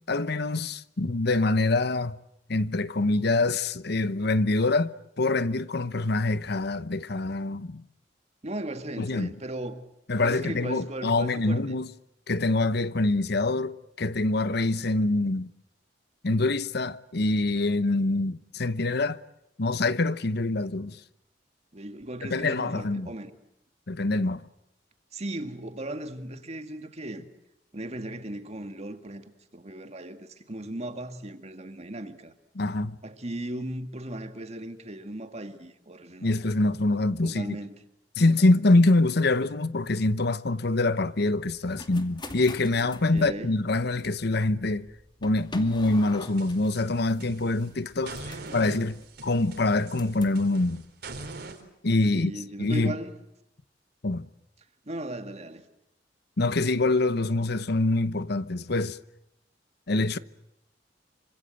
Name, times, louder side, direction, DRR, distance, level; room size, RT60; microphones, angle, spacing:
voice 1, 0.1-2.2 2.5-7.8 9.0-9.3 10.1-11.9 12.3-15.5 16.2-19.2 19.6-21.0 22.3-23.1 23.9-24.5 32.6-33.0 36.2-37.6 38.2-44.9 45.2-50.8 51.8-52.3 52.6-52.9 54.0-54.3 56.4-59.0 59.9-60.2, left 2 dB, 60° left, 1.0 m, -25 dB
voice 2, 8.4-9.8 10.2-11.8 21.7-23.3 25.1-27.3 27.7-32.3 33.0-36.3 37.2-37.8 38.5-38.6 43.1-43.6 48.3-48.8 52.1-53.2 54.9-55.7, right 1 dB, 35° right, 2.1 m, -37 dB
sound 1, 41.5-50.4, left 2 dB, 25° left, 2.5 m, -46 dB
sound 2, 46.2-47.7 48.1-51.6, right 3 dB, 60° right, 4.1 m, -42 dB
27.0 x 25.5 x 7.9 m
head